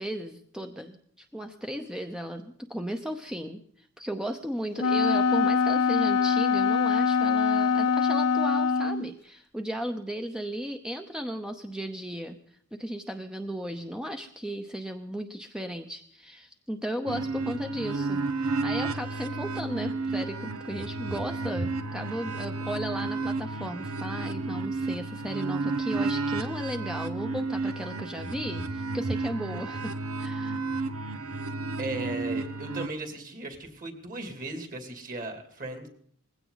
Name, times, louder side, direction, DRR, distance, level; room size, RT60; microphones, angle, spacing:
voice 1, 0.0-30.6, equal, 5° right, 6 dB, 0.7 m, -35 dB
Wind instrument woodwind instrument, 4.8-9.1, left 5 dB, 80° left, 0.7 m, -23 dB
sound 1, 17.1-32.9, right 3 dB, 85° right, 1.1 m, -32 dB
voice 2, 31.8-35.9, right 2 dB, 40° right, 6 dB, 2.8 m, -37 dB
20.0 x 16.5 x 4.0 m, 0.64 s
head